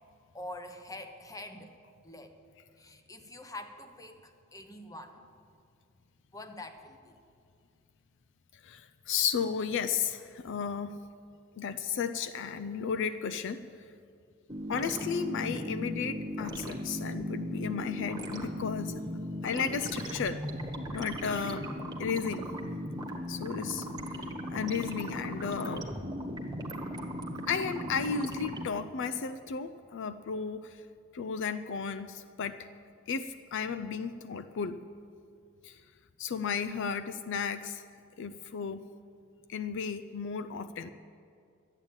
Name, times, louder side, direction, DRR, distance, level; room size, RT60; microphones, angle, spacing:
voice 1, 0.3-1.7 2.0-2.4 2.8-5.2 6.3-7.1, left 1 dB, 15° left, 7 dB, 0.9 m, -45 dB
voice 2, 8.6-10.9 11.6-13.6 14.7-18.9 19.4-20.4 20.9-21.7 22.0-22.5 23.3-23.9 24.5-25.9 27.5-30.8 31.1-32.6 33.1-34.8 35.6-35.8 36.2-37.9 38.2-38.8 39.5-40.9, left 6 dB, 60° left, 12 dB, 0.4 m, -34 dB
sound 1, 14.5-28.7, equal, 20° right, 1.3 m, -37 dB
12.0 x 8.9 x 8.8 m, 2.4 s
head